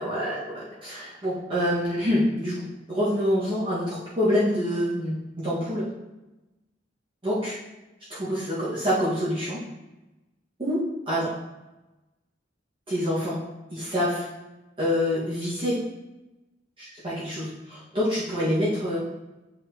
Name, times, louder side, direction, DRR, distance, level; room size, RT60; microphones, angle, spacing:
voice 1, 0.0-5.9 7.2-7.6 8.1-9.6 10.6-11.3 12.9-13.4 13.7-14.3 14.8-15.8 16.8-19.0, equal, 25° right, -11 dB, 1.7 m, -26 dB
8.1 x 4.8 x 2.9 m, 1.0 s
head